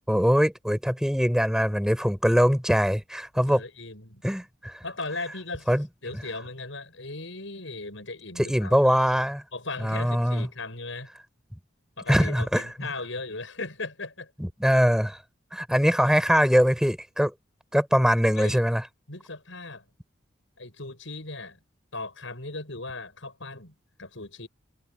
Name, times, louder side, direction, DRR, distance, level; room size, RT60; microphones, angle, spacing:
voice 1, 0.1-3.6 4.2-4.8 5.7-5.9 8.4-9.4 9.8-10.5 12.1-12.9 14.4-15.2 15.5-17.3 17.7-18.8, equal, 5° right, 4.2 m, -22 dB
voice 2, 3.5-4.2 4.8-5.7 6.0-9.1 9.5-11.1 12.0-14.3 18.3-18.6 19.1-19.8 20.6-21.6 21.9-24.5, left 3 dB, 75° left, 6.5 m, -37 dB
head